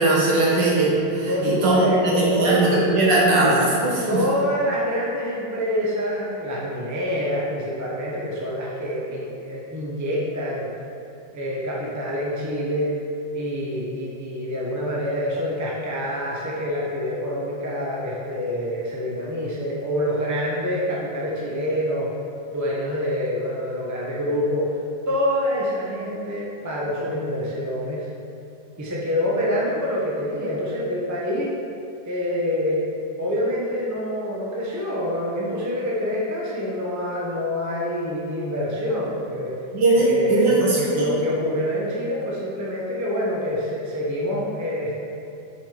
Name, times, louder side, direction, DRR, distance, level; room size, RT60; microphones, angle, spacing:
voice 1, 0.0-4.2 39.7-41.1, right 2 dB, 65° right, -5 dB, 2.1 m, -19 dB
voice 2, 1.3-2.8 4.1-10.7 11.3-13.0 13.3-22.1 22.5-24.7 25.1-28.1 28.8-31.5 32.1-32.9 33.2-39.5 39.9-44.9, equal, 15° right, -5 dB, 0.8 m, -26 dB
5.6 x 5.1 x 6.0 m, 2.8 s
omnidirectional pair, 2.1 m